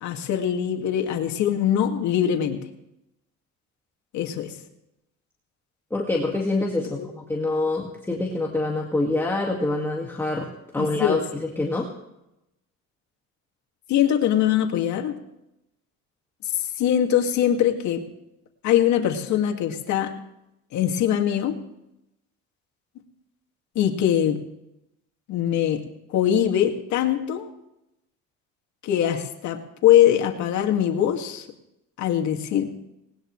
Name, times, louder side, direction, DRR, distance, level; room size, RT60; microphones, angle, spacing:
voice 1, 0.0-2.6 4.1-4.6 7.0-7.1 10.8-11.2 13.9-15.2 16.5-18.0 18.6-20.1 20.7-21.6 23.8-24.4 25.3-25.8 26.1-27.5 28.8-31.5 32.0-32.8, left 10 dB, 65° left, 4 dB, 2.3 m, -22 dB
voice 2, 5.9-10.5 10.7-11.2 11.6-11.9, left 2 dB, 5° left, -1 dB, 2.1 m, -25 dB
19.5 x 19.5 x 3.3 m, 0.86 s
cardioid pair, 135°, 30 cm